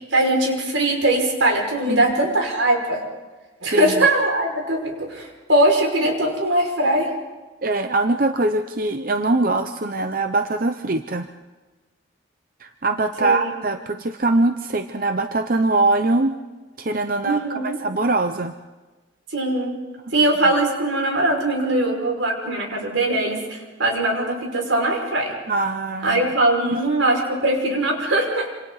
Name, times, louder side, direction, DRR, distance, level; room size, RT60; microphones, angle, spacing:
voice 1, 0.1-3.0 3.6-7.1 13.2-13.5 17.2-17.8 19.3-19.7 20.1-25.3 26.0-28.5, right 1 dB, 85° right, 1 dB, 5.7 m, -21 dB
voice 2, 3.7-4.1 7.6-11.3 12.6-16.4 16.8-18.5 25.5-26.2 26.7-26.8, right 2 dB, 45° right, 7 dB, 0.7 m, -22 dB
28.0 x 27.0 x 4.1 m, 1.2 s
head